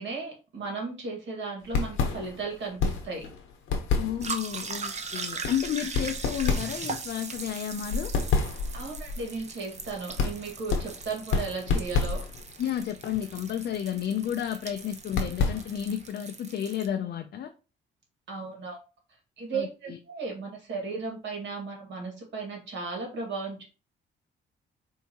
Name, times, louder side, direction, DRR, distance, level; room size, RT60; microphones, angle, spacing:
voice 1, 0.0-3.3 8.7-12.2 18.3-18.8 19.4-23.6, right 4 dB, 65° right, 1.7 m, -35 dB
sound 1, 1.6-16.1, left 4 dB, 85° left, 0.9 m, -31 dB
voice 2, 4.0-8.1 12.6-17.5 19.5-20.0, left 10 dB, 55° left, 0.5 m, -32 dB
sound 2, 4.2-16.9, right 4 dB, 35° right, 0.7 m, -40 dB
4.5 x 2.7 x 2.8 m
cardioid pair, 90°, 20 cm